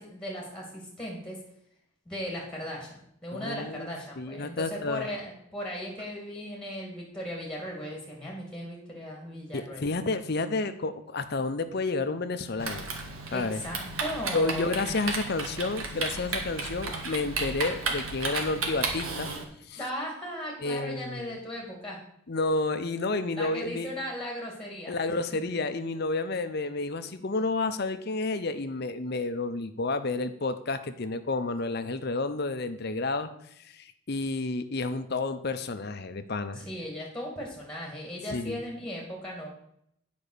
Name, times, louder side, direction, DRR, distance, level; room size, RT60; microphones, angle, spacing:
voice 1, 0.0-1.4 2.1-9.9 13.3-14.8 19.8-22.0 23.4-25.2 36.5-39.5, equal, 5° left, -2 dB, 2.4 m, -37 dB
voice 2, 3.3-5.1 9.5-12.9 13.3-13.6 14.3-19.3 19.7-19.8 20.6-21.3 22.3-23.9 24.9-33.3 33.7-36.7 38.3-38.6, left 3 dB, 50° left, 10 dB, 0.7 m, -30 dB
Typing, 12.6-19.4, right 3 dB, 90° right, 1.7 m, -33 dB
9.1 x 5.2 x 6.7 m, 0.73 s
head